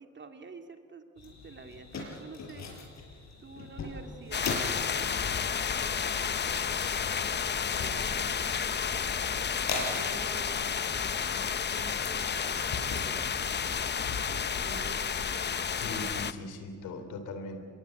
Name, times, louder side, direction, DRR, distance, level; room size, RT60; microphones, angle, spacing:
voice 1, 0.0-2.7 3.4-6.8 7.6-13.4 14.5-15.9, right 4 dB, 40° right, 6 dB, 2.4 m, -49 dB
sound 1, 1.2-15.4, left 3 dB, 60° left, 6.4 m, -41 dB
sound 2, 3.8-14.4, right 1 dB, ahead, 4.9 m, -52 dB
sound 3, 4.3-16.3, left 7 dB, 35° left, 0.8 m, -31 dB
voice 2, 15.6-17.6, left 2 dB, 90° left, 8 dB, 3.2 m, -40 dB
24.5 x 21.5 x 8.2 m, 2.1 s
cardioid pair, 90°, 30 cm